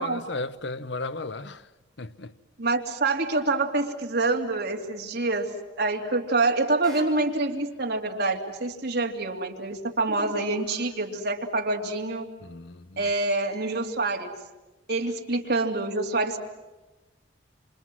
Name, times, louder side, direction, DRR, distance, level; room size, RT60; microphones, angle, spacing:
voice 1, 0.0-1.6 2.0-2.3 12.4-13.0, left 3 dB, 60° left, 0.8 m, -35 dB
voice 2, 2.6-12.3 13.0-14.3 14.9-16.4, right 2 dB, 55° right, 2.9 m, -26 dB
sound 1, 6.8-7.9 10.0-11.2 13.1-13.8, right 2 dB, ahead, 5.2 m, -45 dB
27.0 x 27.0 x 7.7 m
head